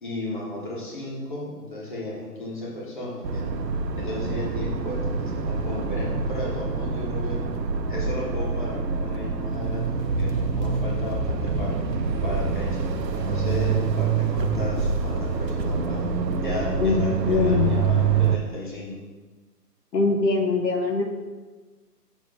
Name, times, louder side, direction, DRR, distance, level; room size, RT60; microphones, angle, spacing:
voice 1, 0.0-3.5 4.0-7.4 7.9-11.7 12.2-12.8 13.2-16.1 16.4-18.9, left 1 dB, 30° left, -5 dB, 1.3 m, -34 dB
sound 1, 3.2-18.4, right 4 dB, 85° right, 0.8 m, -26 dB
voice 2, 17.2-17.8 19.9-21.0, left 4 dB, 80° left, 3 dB, 1.0 m, -22 dB
6.8 x 3.0 x 5.7 m, 1.3 s
hypercardioid pair, 180°, 49 cm